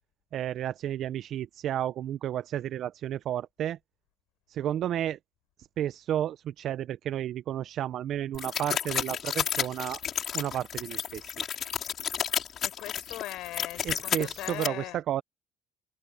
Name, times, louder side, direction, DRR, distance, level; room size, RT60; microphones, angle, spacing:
voice 1, 0.3-3.8 4.5-5.2 5.8-10.0 10.3-11.3 13.8-15.2, right 11 dB, 60° right, 0.9 m, -32 dB
sound 1, 8.3-14.7, left 9 dB, 50° left, 5.8 m, -32 dB
voice 2, 12.6-15.0, left 17 dB, 70° left, 4.9 m, -39 dB
supercardioid pair, 70°, 0 cm